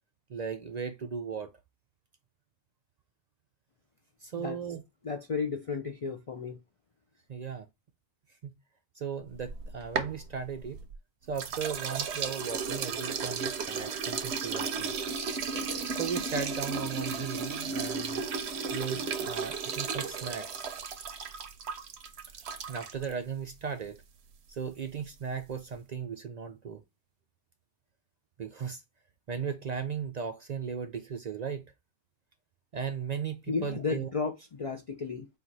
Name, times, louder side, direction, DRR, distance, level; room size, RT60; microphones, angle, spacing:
voice 1, 0.3-1.5 4.2-4.8 7.3-7.7 8.4-8.5 9.0-10.8 11.3-14.9 15.9-18.2 18.7-20.7 22.7-24.0 24.5-26.8 28.4-28.8 29.3-31.6 32.7-34.1, right 6 dB, 55° right, 0.5 m, -36 dB
voice 2, 5.0-6.6 33.5-35.3, left 4 dB, 50° left, 0.4 m, -33 dB
sound 1, 9.4-11.0 11.4-23.1, right 5 dB, 85° right, 0.9 m, -34 dB
4.5 x 2.4 x 3.8 m
omnidirectional pair, 1.1 m